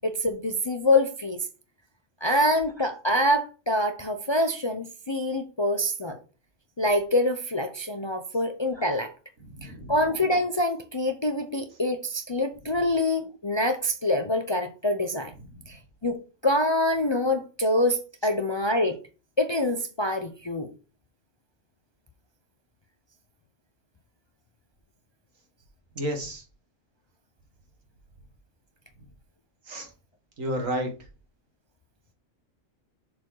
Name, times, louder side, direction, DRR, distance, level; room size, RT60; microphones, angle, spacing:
voice 1, 0.0-1.5 2.2-6.2 6.8-9.1 9.6-15.3 15.7-19.0 19.4-20.7, left 1 dB, 35° left, 0.5 m, -25 dB
voice 2, 9.5-9.9 26.0-26.4 29.7-29.9 30.4-30.9, equal, 85° right, 2.1 m, -31 dB
6.9 x 4.4 x 4.8 m
omnidirectional pair, 1.3 m